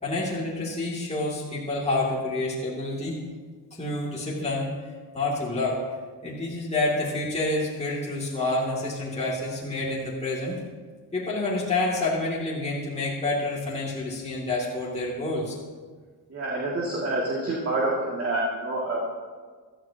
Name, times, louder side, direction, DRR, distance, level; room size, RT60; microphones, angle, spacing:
voice 1, 0.0-3.1 3.7-4.7 5.1-5.8 6.2-10.6 11.1-15.6, left 2 dB, 15° left, -6 dB, 2.5 m, -28 dB
voice 2, 16.3-19.0, right 2 dB, 30° right, -5 dB, 2.4 m, -27 dB
16.0 x 13.0 x 2.9 m, 1.5 s
cardioid pair, 120°, 44 cm